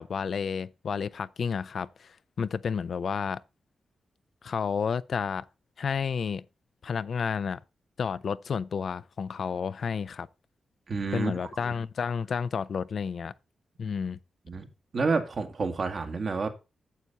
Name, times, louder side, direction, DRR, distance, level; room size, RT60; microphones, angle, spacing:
voice 1, 0.0-3.4 4.4-5.4 5.8-6.4 6.8-7.6 8.0-10.3 11.1-13.3 13.8-14.2, left 6 dB, 65° left, 0.5 m, -31 dB
voice 2, 10.9-11.5 14.5-14.7 14.9-16.5, right 4 dB, 60° right, 1.8 m, -29 dB
9.4 x 6.9 x 4.1 m
cardioid pair, 60°, 0 cm